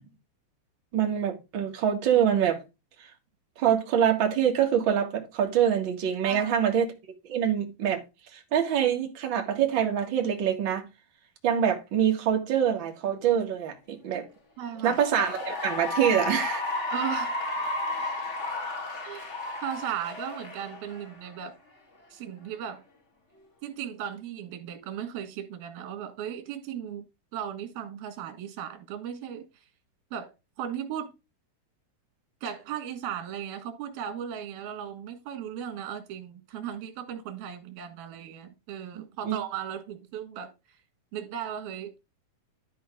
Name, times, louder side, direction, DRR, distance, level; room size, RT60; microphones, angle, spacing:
voice 1, 0.9-2.6 3.6-6.9 7.3-8.0 8.3-10.8 11.4-14.3 14.8-16.6 39.0-39.4, right 9 dB, 40° right, 2.0 m, -25 dB
voice 2, 6.2-6.6 14.6-15.0 16.9-17.3 19.0-19.3 19.6-21.6 22.1-22.8 23.6-27.0 27.3-29.6 30.1-31.1 32.4-40.5 41.1-41.9, right 9 dB, 90° right, 3.4 m, -36 dB
Cheering / Applause, 14.7-21.4, left 2 dB, 65° left, 0.7 m, -33 dB
13.0 x 4.7 x 3.5 m
omnidirectional pair, 4.2 m